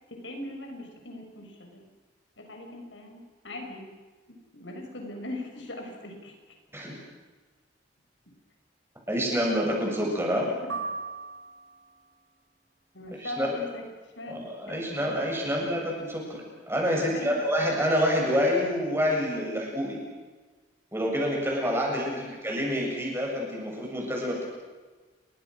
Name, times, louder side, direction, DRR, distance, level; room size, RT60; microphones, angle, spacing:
voice 1, 0.1-1.9 2.4-3.9 4.3-6.3 10.6-10.8 12.9-13.8 14.2-15.5 17.0-17.4 22.0-22.4, left 1 dB, 75° left, 3 dB, 6.3 m, -40 dB
voice 2, 9.1-10.5 13.2-13.5 14.3-16.4 16.7-20.0 20.9-24.4, equal, 15° right, -1 dB, 7.7 m, -27 dB
sound 1, 10.7-12.0, right 4 dB, 90° right, 4.5 m, -36 dB
30.0 x 24.5 x 6.5 m, 1.3 s
head